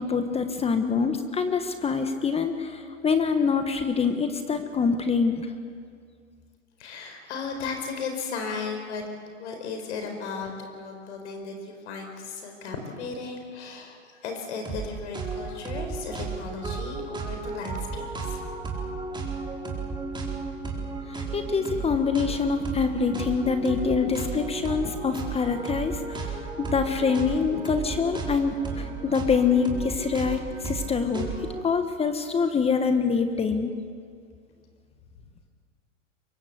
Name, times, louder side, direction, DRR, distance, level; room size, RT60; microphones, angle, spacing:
voice 1, 0.0-5.5 21.1-33.7, left 5 dB, 15° left, 7 dB, 1.4 m, -25 dB
voice 2, 6.8-9.0 9.4-18.3, left 5 dB, 60° left, 4 dB, 4.7 m, -35 dB
sound 1, 14.6-14.9 15.1-31.6, right 4 dB, 10° right, 4.4 m, -34 dB
23.5 x 22.0 x 8.2 m, 2.2 s
hypercardioid pair, 115°, 38 cm